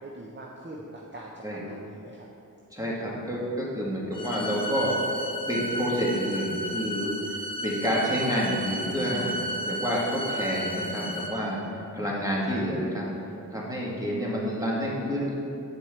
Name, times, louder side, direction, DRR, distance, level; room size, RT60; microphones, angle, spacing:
voice 1, 0.0-2.3 4.1-4.7, right 1 dB, 35° right, -2 dB, 0.7 m, -43 dB
voice 2, 2.7-13.1 13.5-15.3, equal, 10° right, -5 dB, 1.7 m, -29 dB
sound 1, 4.1-11.3, equal, 15° left, 1.0 m, -33 dB
8.5 x 4.5 x 4.4 m, 2.7 s
wide cardioid pair, 50°, 35 cm